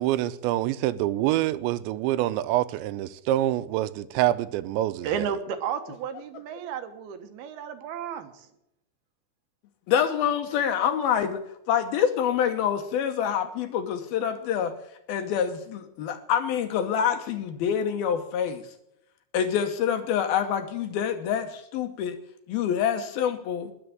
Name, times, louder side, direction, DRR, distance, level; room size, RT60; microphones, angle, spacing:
voice 1, 0.0-5.2, right 14 dB, 85° right, 3.0 m, -26 dB
voice 2, 5.0-8.5, right 8 dB, 70° right, 2.8 m, -33 dB
voice 3, 9.9-11.4 11.7-14.7 15.1-18.6 19.3-22.2 22.5-23.7, left 8 dB, 70° left, 2.5 m, -26 dB
20.5 x 7.1 x 9.0 m
omnidirectional pair, 5.1 m